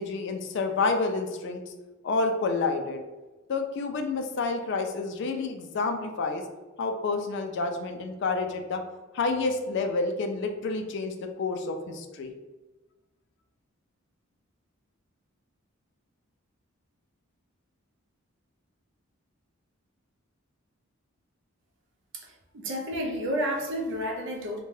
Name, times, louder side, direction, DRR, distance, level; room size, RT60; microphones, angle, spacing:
voice 1, 0.0-1.6 2.0-3.0 3.5-6.4 6.8-8.8 9.1-12.3, left 3 dB, 55° left, 5 dB, 0.3 m, -29 dB
voice 2, 22.1-24.6, equal, 55° right, 0 dB, 0.5 m, -31 dB
2.7 x 2.2 x 3.1 m, 1.2 s
head